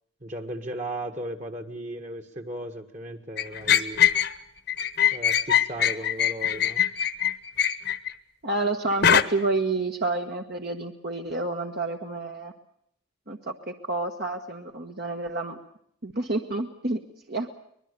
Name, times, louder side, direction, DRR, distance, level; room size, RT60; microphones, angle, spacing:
voice 1, 0.2-4.0 5.1-6.8, right 1 dB, 35° right, 7 dB, 1.8 m, -36 dB
sound 1, 3.4-4.3 4.7-8.1 9.0-9.2, left 9 dB, 50° left, 1.1 m, -22 dB
voice 2, 8.4-12.5 13.3-13.4 13.7-15.6 16.0-17.0 17.3-17.5, right 2 dB, 50° right, 3 dB, 1.5 m, -29 dB
24.0 x 21.0 x 6.9 m, 0.72 s
head